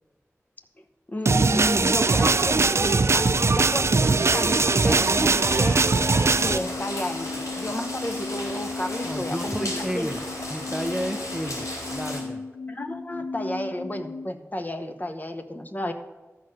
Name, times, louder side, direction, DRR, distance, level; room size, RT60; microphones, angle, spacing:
voice 1, 1.1-5.8 6.4-9.7 9.9-10.1 12.7-15.9, left 1 dB, 30° left, 6 dB, 0.8 m, -32 dB
sound 1, 1.3-6.6, right 3 dB, 60° right, 0.4 m, -21 dB
sound 2, 4.2-12.2, left 1 dB, 90° left, 3.4 m, -35 dB
sound 3, 4.7-14.3, left 3 dB, 55° left, 0.5 m, -36 dB
voice 2, 9.0-10.2 10.5-12.5, equal, 5° right, 8 dB, 0.5 m, -32 dB
13.0 x 4.4 x 6.2 m, 1.2 s
wide cardioid pair, 55°, 5 cm